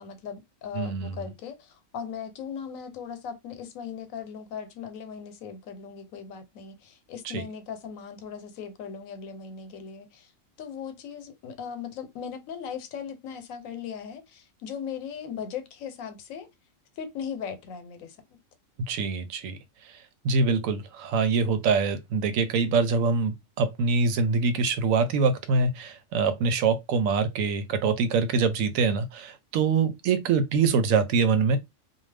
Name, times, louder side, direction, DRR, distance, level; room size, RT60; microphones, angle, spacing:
voice 1, 0.0-10.3 10.6-16.5 17.0-18.4, left 7 dB, 90° left, 1.1 m, -38 dB
voice 2, 0.7-1.3 7.3-7.4 18.9-19.6 19.9-20.0 20.2-31.6, right 4 dB, 85° right, 1.0 m, -24 dB
2.6 x 2.2 x 3.3 m
omnidirectional pair, 1.4 m